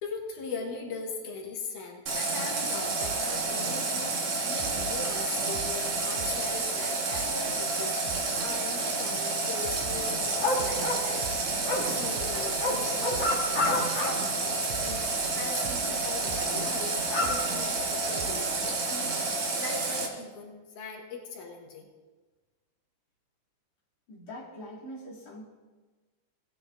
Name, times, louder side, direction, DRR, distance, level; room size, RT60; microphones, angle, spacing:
voice 1, 0.0-17.0 17.2-21.9, left 4 dB, 85° left, 0 dB, 2.8 m, -40 dB
Water tap faucet, 2.1-20.1, right 3 dB, 55° right, 2.2 m, -30 dB
sound 1, 3.0-3.3 3.7-3.9 4.6-5.8 6.2-6.5 6.8-6.9 7.1-7.5 7.8-7.9 8.1-8.4 8.7-9.1 9.3-14.1 14.4-14.5 14.7-16.5 17.2-17.6 18.2-18.4 18.8-18.9 19.1-19.2, right 8 dB, 85° right, 2.1 m, -44 dB
sound 2, 9.8-14.3 14.6-15.1 15.7-15.8 16.1-16.2 16.6-18.5 19.1-19.2, left 2 dB, 50° left, 1.7 m, -31 dB
voice 2, 24.1-25.4, equal, 30° left, -7 dB, 2.7 m, -43 dB
17.5 x 9.6 x 2.5 m, 1.3 s
omnidirectional pair, 3.5 m